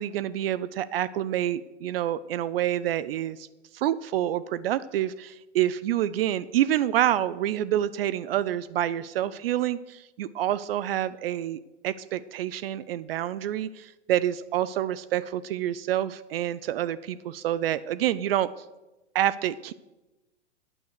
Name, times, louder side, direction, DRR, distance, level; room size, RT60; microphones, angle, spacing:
voice 1, 0.0-3.4 3.7-18.5 19.1-19.7, right 12 dB, 55° right, 17 dB, 0.5 m, -27 dB
9.8 x 8.5 x 6.4 m, 1.1 s
hypercardioid pair, 120°, 36 cm